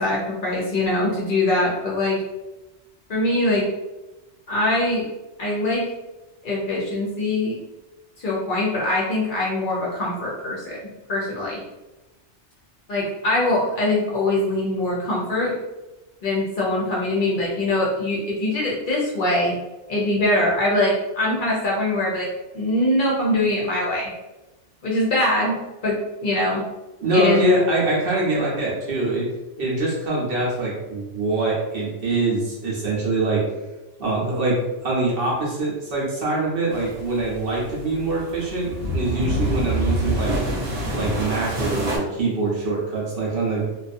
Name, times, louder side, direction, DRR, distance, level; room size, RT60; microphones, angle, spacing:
voice 1, 0.0-2.2 3.1-3.7 4.5-5.0 5.4-5.9 6.4-7.6 8.2-10.8 11.1-11.6 12.9-15.6 16.2-19.5 19.9-22.3 22.5-24.1 24.8-26.6 27.1-27.6, left 1 dB, 55° left, -4 dB, 0.7 m, -23 dB
voice 2, 27.0-29.3 29.6-33.4 34.0-40.4 40.9-43.7, right 2 dB, 60° right, -4 dB, 0.9 m, -24 dB
sound 1, 36.7-42.0, right 1 dB, 80° right, 1.0 m, -26 dB
2.5 x 2.3 x 2.5 m, 1.1 s
omnidirectional pair, 1.2 m